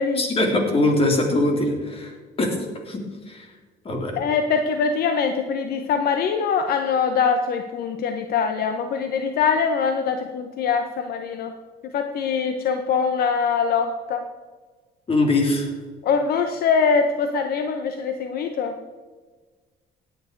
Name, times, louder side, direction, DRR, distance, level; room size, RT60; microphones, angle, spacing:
voice 1, 0.1-2.1 2.4-3.0 3.3-3.4 3.8-4.1 15.1-15.7, left 2 dB, 35° left, 2 dB, 3.3 m, -22 dB
voice 2, 4.2-11.5 11.8-14.2 16.0-18.7, left 6 dB, 65° left, 7 dB, 1.0 m, -23 dB
17.5 x 9.2 x 4.6 m, 1.4 s
cardioid pair, 110°, 17 cm